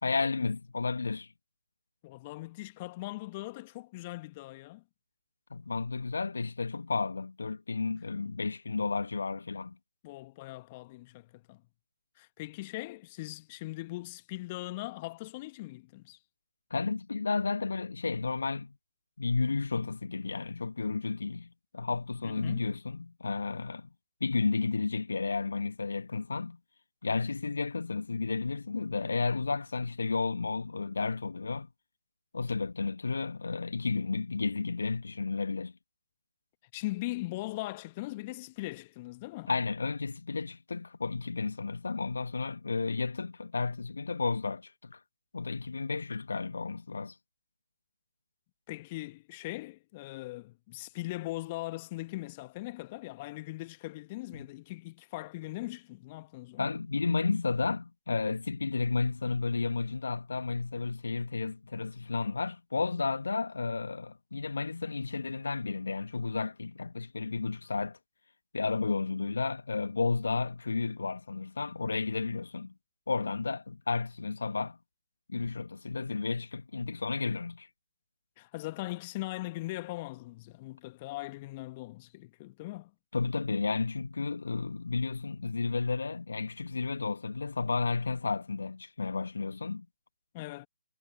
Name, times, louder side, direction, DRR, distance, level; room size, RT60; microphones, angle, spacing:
voice 1, 0.0-1.3 5.5-9.8 16.7-18.8 19.2-23.9 24.2-26.6 27.0-31.7 32.3-35.7 39.5-45.0 45.3-47.1 54.3-54.5 56.6-68.0 68.5-72.7 73.1-74.8 75.3-77.7 83.1-89.9, left 4 dB, 65° left, 1.9 m, -32 dB
voice 2, 2.0-4.8 10.0-11.6 12.2-16.2 22.2-22.7 36.7-39.5 48.7-56.7 78.4-82.9 90.3-90.7, left 19 dB, 25° left, 1.4 m, -40 dB
figure-of-eight pair, 140°, 0 cm